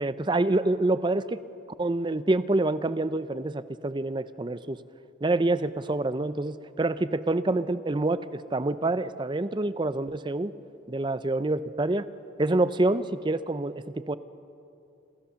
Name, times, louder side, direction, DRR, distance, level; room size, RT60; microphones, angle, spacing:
voice 1, 0.0-1.4 1.8-4.8 5.2-10.5 10.9-12.1 12.4-14.2, right 2 dB, 25° right, 14 dB, 0.5 m, -27 dB
27.5 x 14.5 x 6.9 m, 2.7 s
head